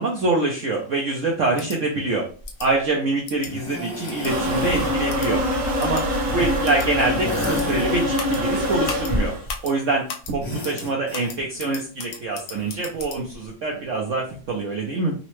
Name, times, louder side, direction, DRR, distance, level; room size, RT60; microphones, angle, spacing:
voice 1, 0.0-2.3 2.6-5.4 5.8-6.1 6.3-9.3 9.6-15.1, right 3 dB, 75° right, -1 dB, 0.7 m, -25 dB
sound 1, 1.6-1.8 2.5-2.7 3.3-3.5 4.1-4.3 5.1-5.3 5.8-6.0 6.6-6.9 7.4-7.7 8.2-8.4 8.9-9.1 9.5-9.7 10.1-10.3 10.6-10.9 11.1-13.2, left 6 dB, 70° left, 1.2 m, -35 dB
sound 2, 2.4-2.7 3.4-4.9 5.2-6.4 6.9-8.4 8.8-9.9 10.2-11.7 12.5-13.5 14.4-14.5, left 1 dB, 25° left, 0.6 m, -34 dB
sound 3, 4.2-9.4, left 1 dB, 45° right, 1.3 m, -24 dB
3.8 x 2.1 x 3.0 m, 0.39 s
omnidirectional pair, 2.0 m